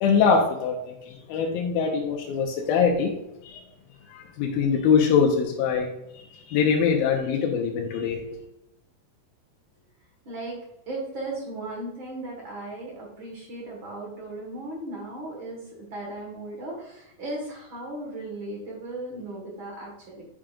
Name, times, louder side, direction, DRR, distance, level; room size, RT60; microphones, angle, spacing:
voice 1, 0.0-3.1 3.4-3.6 4.1-5.9 6.2-8.2, left 6 dB, 85° left, 2 dB, 2.6 m, -23 dB
voice 2, 10.3-10.6 10.9-20.2, right 2 dB, 50° right, -2 dB, 1.7 m, -36 dB
8.9 x 4.8 x 2.5 m, 0.87 s
omnidirectional pair, 4.2 m